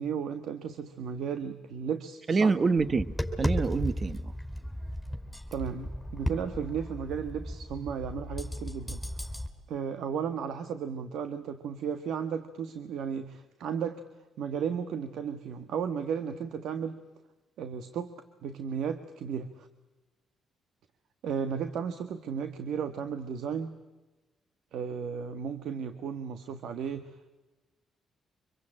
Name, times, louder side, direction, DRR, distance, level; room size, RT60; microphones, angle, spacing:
voice 1, 0.0-2.5 5.5-9.0 9.7-14.0 14.4-17.0 17.6-18.1 18.4-19.7 21.2-23.7 24.7-27.1, right 7 dB, 80° right, 9 dB, 1.5 m, -34 dB
voice 2, 2.3-4.3, right 4 dB, 35° right, 14 dB, 1.2 m, -27 dB
Tap, 2.8-9.5, equal, 5° right, 4.7 m, -35 dB
26.0 x 22.5 x 8.8 m, 1.1 s
cardioid pair, 90°, 0 cm